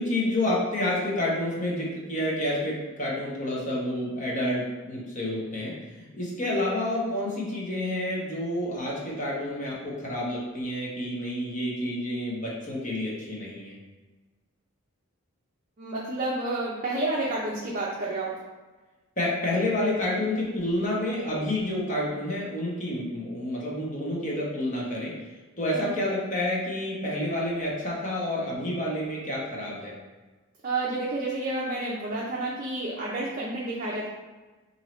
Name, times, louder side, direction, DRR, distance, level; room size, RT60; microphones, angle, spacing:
voice 1, 0.0-13.8 19.2-25.3 25.6-29.9, left 1 dB, 35° left, -4 dB, 0.9 m, -29 dB
voice 2, 15.8-18.4 25.7-25.9 30.6-34.1, right 2 dB, 40° right, -5 dB, 0.5 m, -30 dB
4.4 x 2.7 x 3.0 m, 1.2 s
head